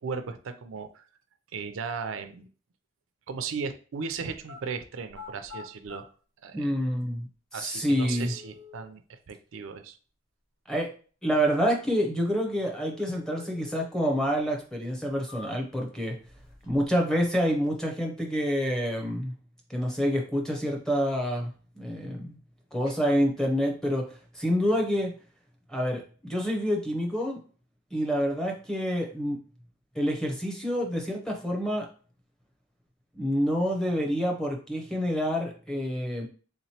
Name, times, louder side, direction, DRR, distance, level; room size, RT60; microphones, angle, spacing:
voice 1, 0.0-1.0 1.5-2.5 3.3-6.1 6.4-6.7 7.5-10.0, right 5 dB, 85° right, 9 dB, 0.4 m, -36 dB
sound 1, 4.3-4.6 5.1-6.0 7.0-7.1 7.8-8.8 12.8-13.8 14.2-14.3 14.9-15.8 16.2-16.9 17.2-17.8, left 5 dB, 80° left, 1.2 m, -47 dB
voice 2, 6.5-8.3 10.7-10.9 11.2-16.2 16.7-19.3 19.7-22.4 22.7-24.1 24.3-25.1 25.7-27.4 27.9-29.4 29.9-31.9 33.1-36.3, equal, 5° left, 0 dB, 0.6 m, -27 dB
3.6 x 3.0 x 2.8 m, 0.39 s
head